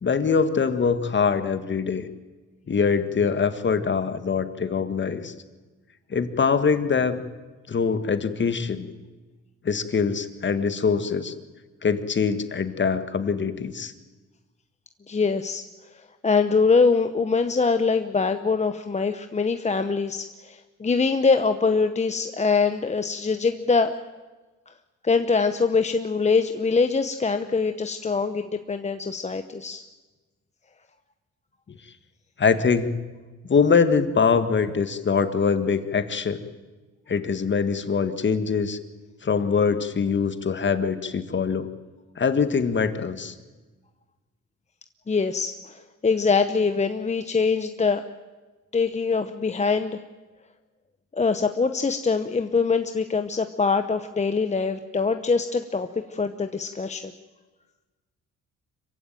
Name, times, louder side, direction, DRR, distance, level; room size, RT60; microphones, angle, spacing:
voice 1, 0.0-2.1 2.7-5.3 6.1-7.2 7.7-8.9 9.6-11.3 11.8-13.9 32.4-33.0 33.4-36.4 37.1-38.8 39.2-41.7 42.2-43.3, left 5 dB, 40° left, 10 dB, 1.8 m, -23 dB
voice 2, 15.1-15.6 15.9-24.0 24.7-24.8 25.0-29.8 45.1-48.0 48.7-50.0 51.1-57.1, left 4 dB, 25° left, 8 dB, 1.0 m, -23 dB
26.0 x 15.5 x 9.2 m, 1.3 s
cardioid pair, 90°, 30 cm